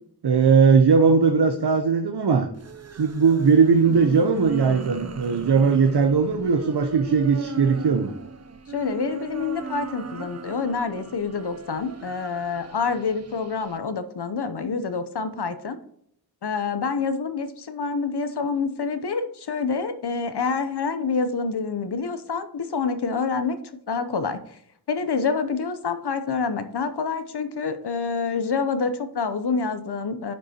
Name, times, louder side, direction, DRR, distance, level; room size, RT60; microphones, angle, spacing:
voice 1, 0.2-2.5 3.0-8.1, right 5 dB, 80° right, 5 dB, 0.7 m, -19 dB
sound 1, 2.5-13.8, right 3 dB, 40° right, 0.6 m, -37 dB
voice 2, 8.7-15.8 16.4-23.6 23.9-24.6 24.9-30.3, left 5 dB, 85° left, 10 dB, 0.8 m, -27 dB
10.0 x 5.3 x 2.8 m, 0.69 s
wide cardioid pair, 70°, 39 cm